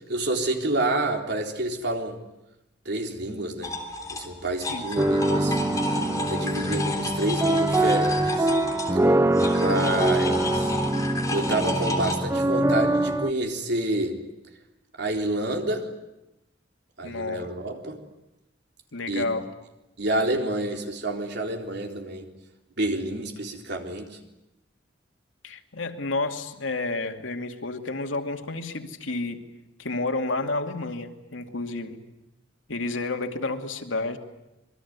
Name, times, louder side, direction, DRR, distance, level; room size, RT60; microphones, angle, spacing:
voice 1, 0.1-2.2 2.9-3.7 4.1-5.6 6.3-8.6 9.5-10.8 11.3-14.2 15.0-15.8 17.0-18.0 19.1-19.3 20.0-22.3 22.8-24.1, right 1 dB, 60° right, 3 dB, 3.8 m, -28 dB
sound 1, 3.6-12.2, left 2 dB, 20° left, 3.7 m, -32 dB
sound 2, 5.0-13.3, right 1 dB, 15° right, 0.9 m, -24 dB
voice 2, 6.4-6.8 17.0-17.5 18.9-19.5 25.4-29.4 29.8-32.0 32.7-34.2, left 3 dB, 90° left, 5 dB, 2.5 m, -30 dB
27.0 x 22.0 x 9.7 m, 0.94 s
head